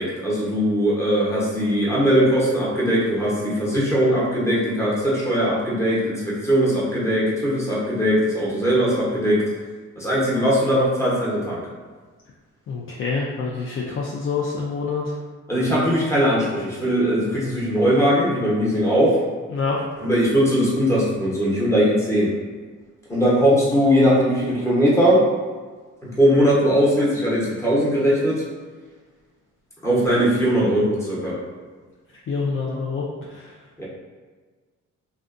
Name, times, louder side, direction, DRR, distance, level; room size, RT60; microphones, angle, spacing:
voice 1, 0.0-9.4 10.0-11.7 15.5-19.2 20.0-22.3 23.1-25.2 26.0-28.4 29.8-31.4 33.8-33.9, equal, 10° left, -7 dB, 0.9 m, -20 dB
voice 2, 12.7-15.1 19.5-19.8 32.3-33.0 33.3-33.5, left 4 dB, 45° left, -4 dB, 0.4 m, -26 dB
2.5 x 2.3 x 2.4 m, 1.4 s
cardioid pair, 90°, 30 cm